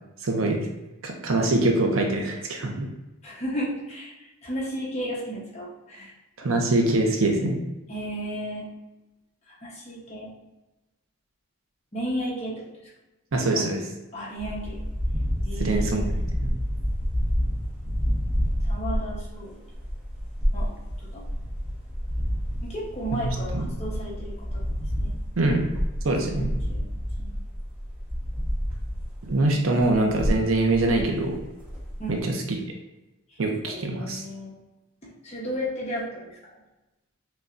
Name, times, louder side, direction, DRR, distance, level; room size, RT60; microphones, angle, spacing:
voice 1, 0.2-0.7 1.0-2.9 6.4-7.6 13.3-13.8 15.6-16.5 23.2-23.7 25.4-25.7 26.0-26.5 29.2-31.4 32.1-32.4 33.4-34.2, right 2 dB, 70° right, 2 dB, 0.6 m, -24 dB
voice 2, 3.2-4.2 4.4-6.1 7.9-8.7 9.5-10.3 11.9-12.6 13.5-13.6 14.1-14.8 15.4-15.8 16.1-16.2 18.6-19.6 20.5-20.7 21.0-21.2 22.6-24.6 25.0-25.1 26.3-26.9 27.2-27.4 32.0-32.4 33.7-34.5 35.0-36.3, equal, 30° left, -5 dB, 1.0 m, -34 dB
sound 1, 14.4-29.4 29.7-32.2, equal, 10° right, 0.9 m, -29 dB
5.9 x 2.2 x 2.5 m, 1.0 s
head